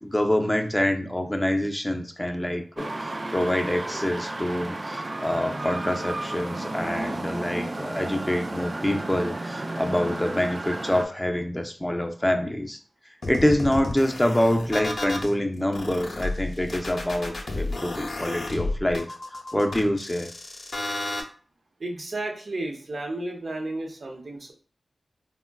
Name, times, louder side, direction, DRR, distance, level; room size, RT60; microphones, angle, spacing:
voice 1, 0.0-12.8 13.3-19.1 19.5-20.3, left 1 dB, 15° left, 5 dB, 0.5 m, -26 dB
sound 1, 2.8-11.1, right 2 dB, 45° right, 0.4 m, -33 dB
sound 2, 13.2-15.3 15.7-21.2, left 2 dB, 65° left, 0.6 m, -32 dB
voice 2, 21.8-24.5, right 2 dB, 65° right, 2 dB, 0.8 m, -33 dB
3.5 x 2.2 x 2.3 m, 0.40 s
cardioid pair, 45°, 0 cm